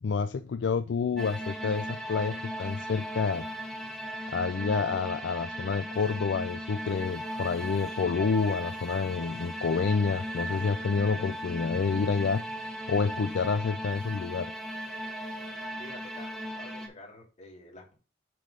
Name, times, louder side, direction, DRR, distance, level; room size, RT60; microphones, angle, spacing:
voice 1, 0.0-3.5 4.3-12.4 12.9-14.5, left 5 dB, 65° left, 10 dB, 0.4 m, -28 dB
sound 1, 1.2-16.9, equal, ahead, 1.0 m, -37 dB
voice 2, 15.8-17.9, left 2 dB, 40° left, 0 dB, 2.4 m, -49 dB
7.6 x 3.3 x 5.3 m, 0.35 s
head